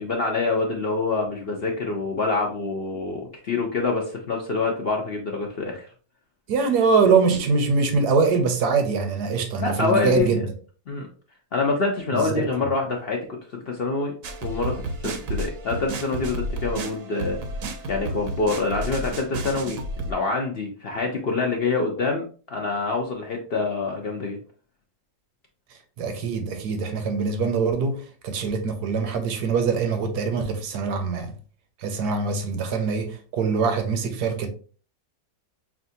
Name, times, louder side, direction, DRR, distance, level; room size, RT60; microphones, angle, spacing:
voice 1, 0.0-5.9 9.6-10.4 10.9-11.1 11.5-13.2 13.7-14.1 14.4-17.4 17.9-24.4, left 3 dB, 60° left, 0.6 m, -26 dB
voice 2, 6.5-10.4 12.1-12.5 26.0-31.3 31.8-34.5, right 5 dB, 80° right, 1.3 m, -23 dB
sound 1, 14.2-20.1, right 1 dB, 65° right, 1.0 m, -31 dB
5.8 x 2.3 x 2.6 m
omnidirectional pair, 1.7 m